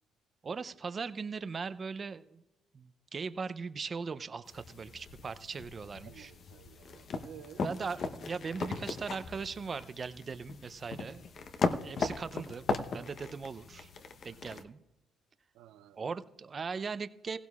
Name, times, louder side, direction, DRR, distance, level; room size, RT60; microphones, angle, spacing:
voice 1, 0.4-2.4 2.7-6.3 7.6-11.2 11.8-12.7 12.9-13.9 14.2-14.8 16.0-17.4, right 5 dB, 40° right, 13 dB, 0.6 m, -39 dB
sound 1, 4.5-14.6, left 4 dB, 55° left, 0.9 m, -38 dB
voice 2, 6.1-7.7 15.5-16.1, right 10 dB, 85° right, 14 dB, 0.5 m, -53 dB
16.5 x 16.0 x 2.4 m, 0.98 s
supercardioid pair, 75°, 0 cm